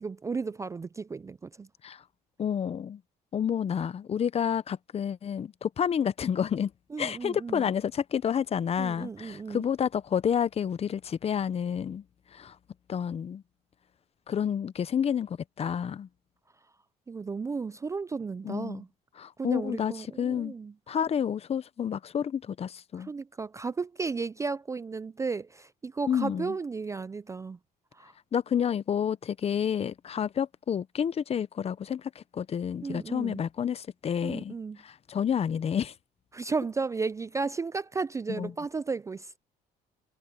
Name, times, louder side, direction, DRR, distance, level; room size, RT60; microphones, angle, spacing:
voice 1, 0.0-1.7 6.9-7.7 8.8-9.6 17.1-18.9 19.4-20.7 23.0-27.6 27.9-28.1 32.8-33.4 34.2-34.8 36.3-39.4, right 4 dB, 20° right, 0.3 m, -34 dB
voice 2, 2.4-3.0 3.3-6.7 7.0-12.0 12.3-12.6 12.9-13.4 14.3-16.1 18.4-18.8 19.2-20.5 20.9-23.1 26.1-26.5 28.3-34.5 34.8-35.9 38.3-38.5, left 8 dB, 35° left, 0.7 m, -29 dB
cardioid pair, 110°, 17 cm